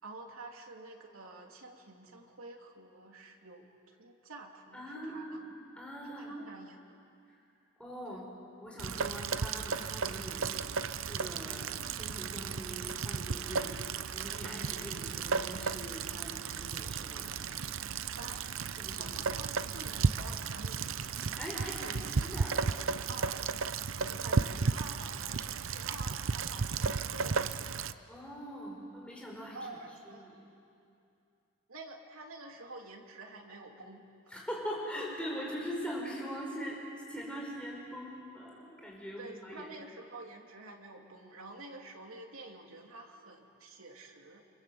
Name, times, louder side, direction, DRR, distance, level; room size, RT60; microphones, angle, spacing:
voice 1, 0.0-5.4 6.2-7.0 8.1-8.2 18.2-18.6 18.9-21.0 21.5-22.1 23.1-27.8 29.5-30.3 31.7-34.3 39.2-44.4, right 2 dB, 90° right, 1 dB, 3.0 m, -49 dB
voice 2, 4.7-6.3 7.8-8.2 8.6-10.5 11.1-13.9 14.1-17.4 18.7-19.1 21.4-22.5 28.1-29.6 30.1-30.3 34.3-36.8 37.1-39.7, equal, 5° left, -3 dB, 5.4 m, -42 dB
Rain, 8.8-27.9, right 5 dB, 75° right, 0.7 m, -34 dB
29.0 x 25.5 x 7.9 m, 2.6 s
head